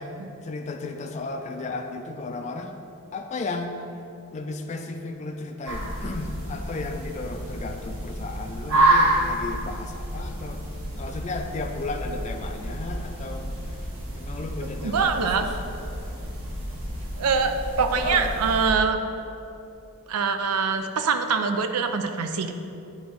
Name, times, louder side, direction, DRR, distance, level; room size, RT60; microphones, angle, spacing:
voice 1, 0.0-2.8 3.1-3.8 4.3-10.6 11.0-13.7 14.1-15.6 18.0-18.3, left 3 dB, 30° left, 4 dB, 0.4 m, -34 dB
sound 1, 5.6-18.7, right 1 dB, 60° right, 1.3 m, -29 dB
voice 2, 14.8-15.5 17.2-19.0 20.1-22.5, right 5 dB, 85° right, 7 dB, 0.5 m, -24 dB
8.4 x 3.0 x 4.7 m, 2.8 s
head